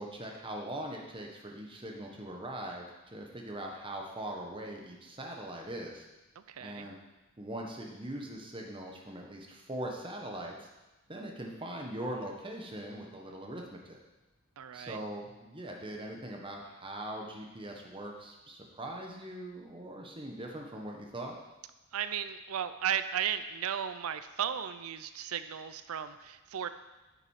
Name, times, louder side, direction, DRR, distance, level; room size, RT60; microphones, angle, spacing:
voice 1, 0.0-2.9 3.1-6.1 6.6-7.0 7.4-10.7 11.1-14.0 14.7-21.4, right 1 dB, 25° right, 0 dB, 1.3 m, -41 dB
voice 2, 6.5-6.9 14.6-15.0 21.9-26.7, right 9 dB, 75° right, 11 dB, 0.5 m, -35 dB
9.9 x 6.6 x 4.8 m, 1.1 s
head